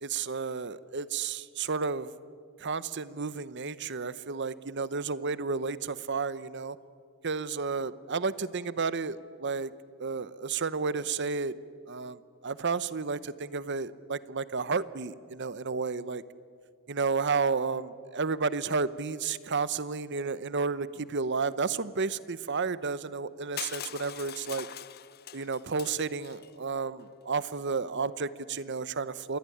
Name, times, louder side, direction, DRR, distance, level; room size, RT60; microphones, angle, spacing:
voice 1, 0.0-2.1 2.6-6.8 7.2-9.7 10.0-11.5 11.9-16.2 16.9-24.7 25.3-29.4, right 4 dB, 50° right, 16 dB, 0.8 m, -32 dB
Crushing, 23.6-26.5, left 11 dB, 45° left, 0.6 m, -42 dB
26.5 x 20.0 x 9.8 m, 2.2 s
head